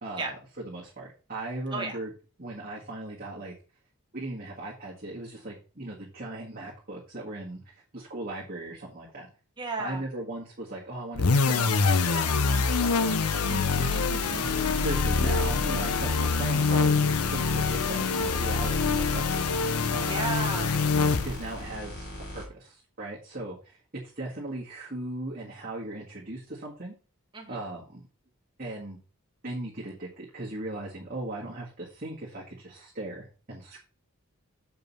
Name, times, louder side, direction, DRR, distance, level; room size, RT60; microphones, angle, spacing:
voice 1, 0.0-2.1 2.4-3.5 4.1-7.6 7.9-9.3 9.8-17.0 17.3-19.4 19.9-20.2 21.2-23.8 24.2-26.9 27.5-28.1 28.6-29.0 29.4-33.8, right 2 dB, 40° right, -4 dB, 1.8 m, -38 dB
voice 2, 9.6-10.0 13.7-14.0 19.8-20.7 27.3-27.6, right 3 dB, 20° right, 1 dB, 1.6 m, -34 dB
sound 1, 11.2-21.6, left 4 dB, 90° left, 0.8 m, -25 dB
sound 2, 14.2-22.5, left 1 dB, 45° left, 3.5 m, -40 dB
7.0 x 5.3 x 5.5 m, 0.35 s
head